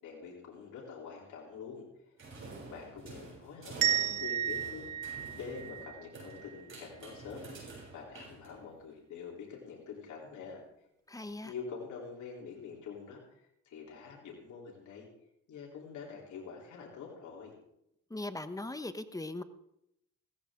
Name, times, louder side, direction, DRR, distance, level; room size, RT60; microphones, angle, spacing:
voice 1, 0.0-2.2 2.7-4.9 5.3-10.6 11.4-15.1 15.5-17.6, left 5 dB, 75° left, -2 dB, 3.8 m, -46 dB
sound 1, 2.2-8.9, right 3 dB, 45° right, 6.9 m, -49 dB
sound 2, 3.8-6.6, right 11 dB, 90° right, 1.0 m, -33 dB
voice 2, 11.1-11.5 18.1-19.4, left 2 dB, 10° left, 11 dB, 1.0 m, -39 dB
16.5 x 14.5 x 3.8 m, 0.81 s
cardioid pair, 90°, 30 cm